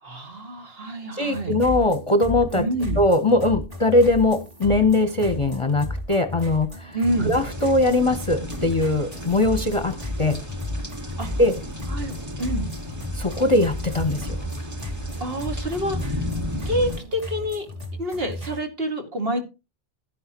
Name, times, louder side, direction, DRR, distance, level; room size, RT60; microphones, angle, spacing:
voice 1, 0.0-1.5 2.5-3.0 6.9-7.3 11.2-11.3 11.9-12.1 12.4-12.7 15.2-16.2 16.7-17.7 18.0-19.4, equal, 65° right, 5 dB, 2.5 m, -27 dB
voice 2, 1.1-2.7 3.0-7.0 7.2-10.4 11.4-11.6 13.1-14.4, left 2 dB, 30° left, 9 dB, 0.9 m, -21 dB
sound 1, 1.3-18.6, equal, 35° right, 2.6 m, -34 dB
sound 2, 7.1-17.0, left 1 dB, 15° right, 1.7 m, -34 dB
12.5 x 9.9 x 3.0 m, 0.28 s
omnidirectional pair, 1.1 m